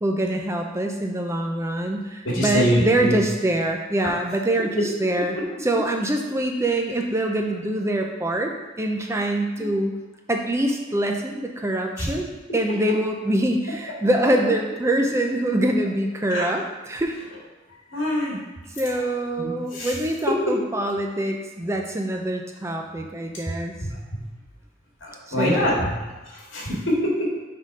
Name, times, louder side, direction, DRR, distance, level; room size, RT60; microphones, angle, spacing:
voice 1, 0.0-9.9 10.3-17.2 18.8-23.7 25.4-25.9, right 1 dB, 15° right, 2 dB, 0.4 m, -24 dB
voice 2, 2.3-3.2 9.6-9.7 12.0-12.1 16.3-16.5 17.9-18.4 19.4-19.9 23.8-23.9 25.0-25.9 26.3-27.3, equal, 70° left, -4 dB, 1.9 m, -24 dB
6.2 x 3.7 x 5.3 m, 1.2 s
head